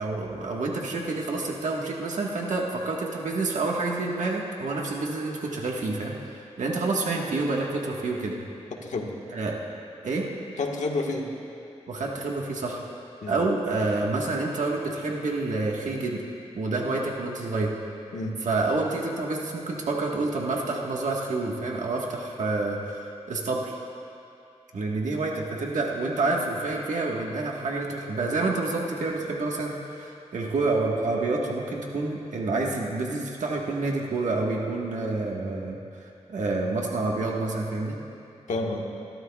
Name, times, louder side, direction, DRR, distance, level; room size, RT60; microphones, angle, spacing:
voice 1, 0.0-8.4 9.3-9.6 10.0-10.3 11.9-12.8 13.3-16.2 16.5-17.7 18.4-23.7 24.7-38.0, right 3 dB, 85° right, -2 dB, 1.5 m, -28 dB
voice 2, 8.7-9.1 10.6-11.3 13.2-13.4 18.1-18.4 38.5-38.8, left 3 dB, 85° left, 0 dB, 1.4 m, -29 dB
25.0 x 12.5 x 2.4 m, 2.6 s
cardioid pair, 55°, 12 cm